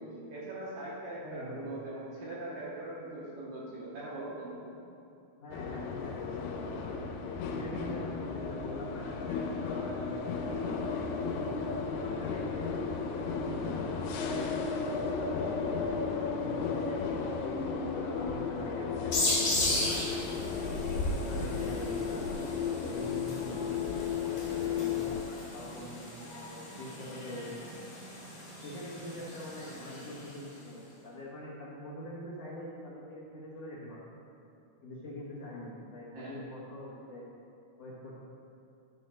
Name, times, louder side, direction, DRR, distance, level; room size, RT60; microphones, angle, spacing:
voice 1, 0.0-4.6 29.7-30.0 36.1-36.3, right 1 dB, 70° right, -7 dB, 2.6 m, -41 dB
voice 2, 1.2-1.7 5.4-7.1 7.5-12.6 13.1-15.5 16.0-20.4 21.0-22.2 22.6-27.7 28.6-34.0 34.8-37.2 37.8-38.1, left 1 dB, 65° left, -7 dB, 1.6 m, -44 dB
sound 1, 5.5-25.2, left 5 dB, 85° left, 2.7 m, -34 dB
sound 2, 19.1-30.5, left 2 dB, 45° left, 2.6 m, -37 dB
11.0 x 4.3 x 6.4 m, 2.7 s
omnidirectional pair, 4.5 m